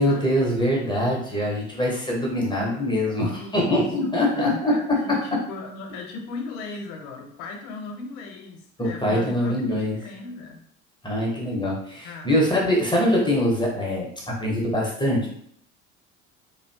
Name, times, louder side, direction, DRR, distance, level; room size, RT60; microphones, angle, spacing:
voice 1, 0.0-4.7 5.1-5.2 8.8-10.0 11.0-15.3, left 1 dB, 10° left, -3 dB, 0.6 m, -23 dB
voice 2, 3.4-10.6 12.0-12.5, left 3 dB, 50° left, 2 dB, 0.7 m, -37 dB
2.5 x 2.4 x 2.2 m, 0.67 s
figure-of-eight pair, 60°, 39 cm